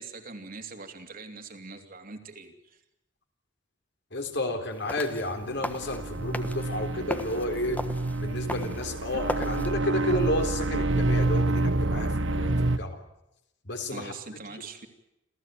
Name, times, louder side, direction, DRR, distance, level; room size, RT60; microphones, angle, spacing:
voice 1, 0.0-2.8 13.9-14.9, right 3 dB, 50° right, 5 dB, 3.0 m, -42 dB
voice 2, 4.1-7.8 8.2-13.0 13.6-14.1 14.5-14.6, left 1 dB, 60° left, 5 dB, 3.9 m, -31 dB
sound 1, 4.7-9.7, left 1 dB, 10° left, 1.3 m, -38 dB
sound 2, 5.3-12.8, right 2 dB, 70° right, 1.1 m, -28 dB
28.0 x 15.5 x 9.2 m, 0.88 s
head